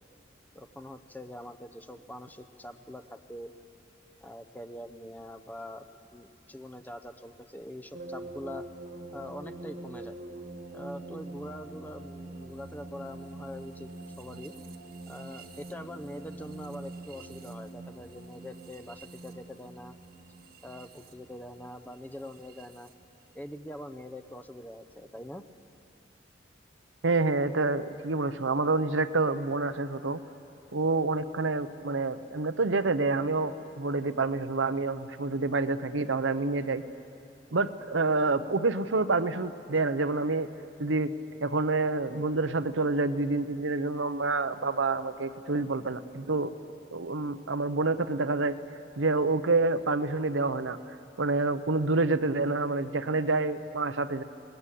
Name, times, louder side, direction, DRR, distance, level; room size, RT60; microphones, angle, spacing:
voice 1, 0.5-3.5 4.2-8.6 9.1-10.2 10.7-13.9 14.2-14.5 15.1-19.9 20.6-22.9 23.3-25.4, left 1 dB, 10° left, 9 dB, 0.7 m, -43 dB
sound 1, 7.9-22.9, right 2 dB, 55° right, 1.5 m, -45 dB
voice 2, 27.0-30.2 30.7-36.8 37.5-40.5 40.8-41.1 41.4-46.5 46.9-48.6 49.0-50.8 51.2-54.2, right 3 dB, 85° right, 11 dB, 0.9 m, -28 dB
27.0 x 20.0 x 8.5 m, 2.7 s
head